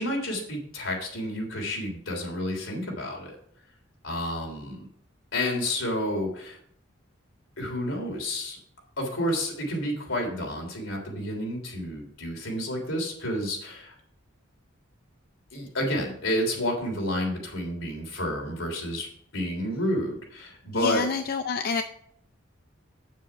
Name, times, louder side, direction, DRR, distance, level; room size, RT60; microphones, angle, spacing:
voice 1, 0.0-3.3 4.0-4.8 5.3-6.6 7.6-8.6 9.0-13.9 15.5-21.0, left 1 dB, 80° left, 0 dB, 3.3 m, -30 dB
voice 2, 20.7-21.8, left 4 dB, 50° left, 7 dB, 0.5 m, -28 dB
8.3 x 7.4 x 4.8 m, 0.64 s
head